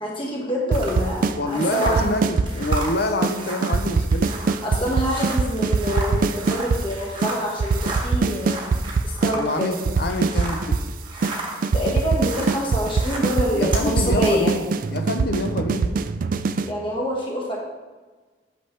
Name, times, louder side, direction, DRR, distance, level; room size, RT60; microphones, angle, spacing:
voice 1, 0.0-2.2 4.6-8.7 9.0-9.8 11.3-11.4 11.7-14.6 16.6-17.6, equal, 30° left, -3 dB, 1.7 m, -26 dB
sound 1, 0.7-10.7 11.0-13.9, right 2 dB, 30° right, 1.1 m, -34 dB
sound 2, 0.7-1.4 1.6-2.9 3.2-3.4 3.6-6.8 7.2-7.3 7.6-9.4 9.6-10.9 11.2-11.3 11.6-16.7, right 4 dB, 50° right, 0.3 m, -22 dB
voice 2, 1.4-4.3 9.3-10.8 13.5-16.0, left 2 dB, 60° left, 6 dB, 0.7 m, -26 dB
8.3 x 6.0 x 3.3 m, 1.3 s
head